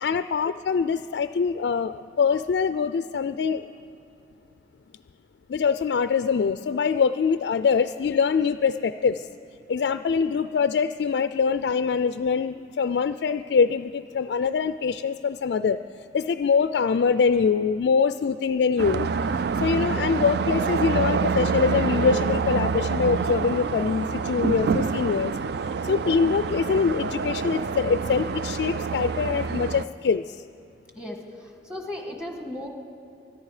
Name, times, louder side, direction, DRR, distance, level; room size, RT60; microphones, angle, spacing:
voice 1, 0.0-3.6 5.5-9.3 9.7-15.8 16.1-19.1 19.6-25.3 25.8-30.4, left 5 dB, 65° left, 11 dB, 0.3 m, -24 dB
sound 1, 18.8-29.8, right 5 dB, 65° right, 0.4 m, -27 dB
voice 2, 30.9-32.7, left 1 dB, 5° right, 2 dB, 1.6 m, -36 dB
24.5 x 10.5 x 4.9 m, 2.8 s
head